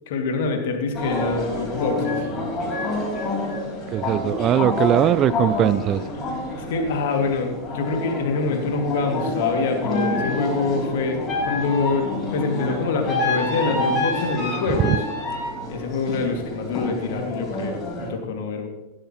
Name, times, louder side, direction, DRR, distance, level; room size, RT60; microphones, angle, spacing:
voice 1, 0.1-2.3 6.6-15.0 15.7-18.7, left 4 dB, 55° left, 4 dB, 2.3 m, -25 dB
sound 1, 0.9-18.1, left 2 dB, 30° left, 5.0 m, -28 dB
voice 2, 3.9-6.0 14.8-15.0, right 11 dB, 30° right, 16 dB, 0.4 m, -20 dB
16.0 x 12.5 x 3.1 m, 0.95 s
figure-of-eight pair, 90°, 0 cm